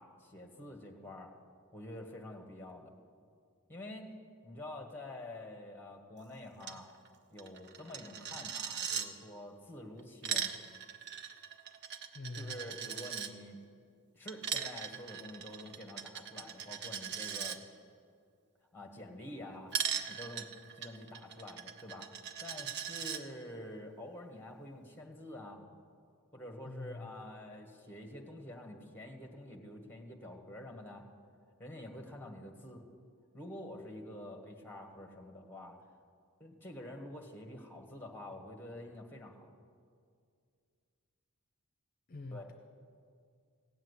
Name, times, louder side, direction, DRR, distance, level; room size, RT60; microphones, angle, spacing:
voice 1, 0.0-1.3 1.7-2.9 3.7-4.1 4.4-6.9 7.3-10.5 12.4-13.6 14.1-17.6 18.7-19.7 20.1-20.5 20.7-22.1 22.4-25.6 26.3-31.0 31.6-32.8 33.3-35.8 36.4-39.5 42.3-42.5, left 1 dB, 10° left, 3 dB, 1.5 m, -47 dB
Coin (dropping), 6.6-6.8 7.1-7.2 7.4-9.1 10.0-13.3 14.3-17.6 19.7-23.2, right 8 dB, 50° right, 0.8 m, -39 dB
voice 2, 12.1-12.7 26.6-27.2 42.1-42.5, left 3 dB, 40° left, 5 dB, 0.7 m, -45 dB
16.5 x 7.4 x 9.7 m, 2.3 s
head